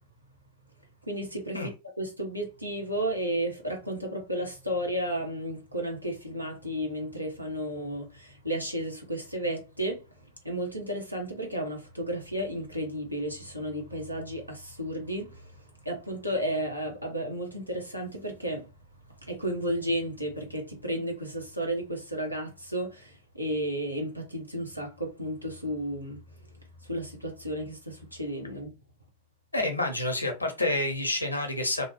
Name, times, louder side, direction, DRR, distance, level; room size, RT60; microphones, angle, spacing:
voice 1, 1.0-1.7 2.0-18.7 19.2-26.2 26.8-28.7, equal, 90° right, 0.8 m, -33 dB
voice 2, 29.5-31.9, left 2 dB, 85° left, 0.7 m, -28 dB
2.7 x 2.0 x 2.8 m
figure-of-eight pair, 90°, 0 cm